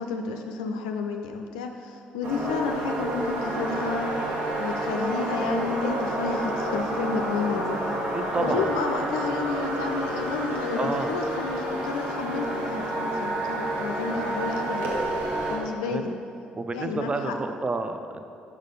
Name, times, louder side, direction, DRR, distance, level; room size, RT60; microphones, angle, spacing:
voice 1, 0.0-4.1 4.6-7.8 8.4-15.0 15.5-16.2 16.7-17.3, left 4 dB, 70° left, 4 dB, 0.4 m, -31 dB
sound 1, 2.2-15.6, right 1 dB, 60° right, 1.2 m, -29 dB
voice 2, 8.1-8.7 10.8-11.1 15.9-16.0 16.5-18.2, right 3 dB, 25° right, 8 dB, 0.5 m, -29 dB
6.4 x 4.6 x 5.3 m, 2.5 s
figure-of-eight pair, 45°, 4 cm